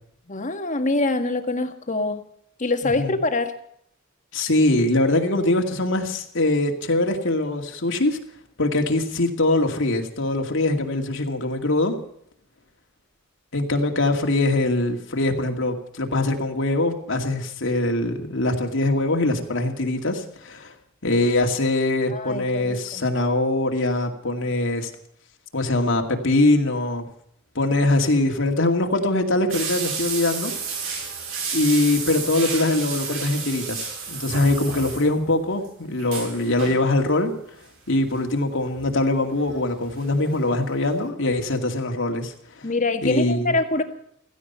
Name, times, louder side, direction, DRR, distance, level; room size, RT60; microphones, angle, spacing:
voice 1, 0.3-2.2 2.6-3.5 22.1-23.1 42.6-43.8, left 2 dB, 40° left, 7 dB, 1.7 m, -24 dB
voice 2, 4.3-8.2 8.6-12.0 13.5-20.7 21.0-24.9 25.5-27.1 27.5-30.5 31.5-37.3 37.9-42.3 42.6-42.7 43.0-43.5, left 2 dB, 65° left, 3 dB, 2.4 m, -22 dB
sound 1, 29.5-35.3 35.6-35.7 36.0-36.8 37.9-38.2 38.8-40.0 40.3-40.4 40.8-40.9, right 5 dB, 80° right, 6.5 m, -31 dB
16.5 x 15.0 x 5.6 m, 0.68 s
head